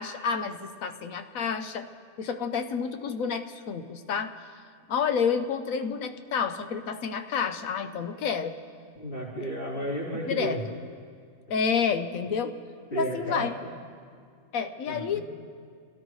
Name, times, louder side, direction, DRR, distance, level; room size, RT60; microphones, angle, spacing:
voice 1, 0.0-1.9 2.2-4.3 4.9-8.6 9.4-9.5 10.3-10.8 11.5-12.5 12.9-13.5 14.5-15.2, left 6 dB, 65° left, 8 dB, 1.2 m, -29 dB
voice 2, 9.0-10.6 12.9-13.7 14.9-15.2, right 1 dB, 40° left, -6 dB, 4.0 m, -33 dB
27.0 x 17.0 x 3.2 m, 2.1 s
omnidirectional pair, 1.6 m